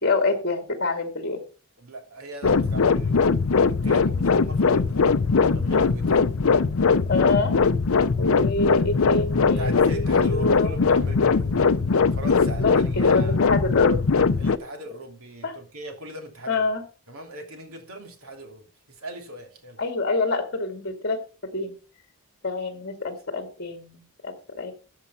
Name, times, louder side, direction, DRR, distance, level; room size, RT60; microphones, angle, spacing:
voice 1, 0.0-1.4 7.1-7.6 8.2-10.7 12.6-14.0 15.4-15.5 16.5-16.8 19.8-21.7 22.4-24.7, left 3 dB, 45° left, 5 dB, 2.2 m, -27 dB
voice 2, 1.8-3.4 3.7-6.3 9.6-11.6 12.1-13.4 14.4-16.7 17.1-18.7 19.0-19.8, right 1 dB, 75° right, 4 dB, 3.1 m, -39 dB
sound 1, 2.4-14.6, left 4 dB, 70° left, 0.6 m, -20 dB
14.0 x 7.2 x 5.6 m, 0.37 s
head